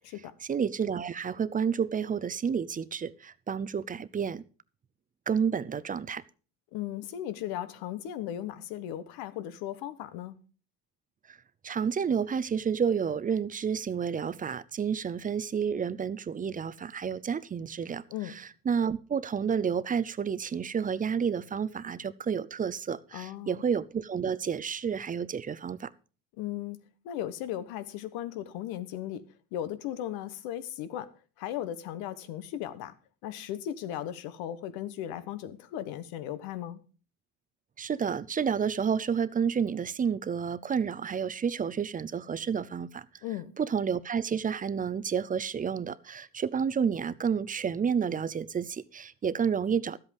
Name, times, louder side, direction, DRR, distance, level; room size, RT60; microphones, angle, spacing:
voice 1, 0.4-4.4 5.3-6.2 11.3-11.4 11.6-25.9 37.8-43.1 43.6-50.0, right 7 dB, 25° right, 0.5 m, -30 dB
voice 2, 6.7-10.4 18.1-18.3 23.1-23.6 26.4-26.8 27.0-29.2 29.5-31.1 31.4-32.9 33.2-36.8 43.2-43.5, left 11 dB, 85° left, 1.2 m, -36 dB
13.0 x 8.1 x 5.2 m
cardioid pair, 115°, 36 cm